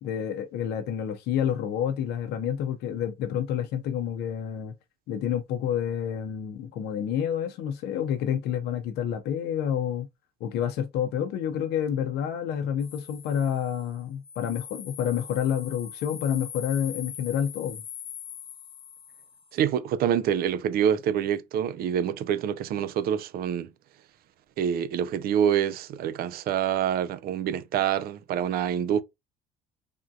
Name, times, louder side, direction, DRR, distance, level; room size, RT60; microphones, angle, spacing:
voice 1, 0.0-4.7 5.1-10.1 10.4-17.8, left 9 dB, 75° left, 0.6 m, -29 dB
sound 1, 12.8-19.6, left 8 dB, 35° left, 0.5 m, -42 dB
voice 2, 19.5-23.7 24.6-29.0, right 9 dB, 65° right, 0.4 m, -26 dB
3.5 x 2.6 x 2.2 m
cardioid pair, 110°, 17 cm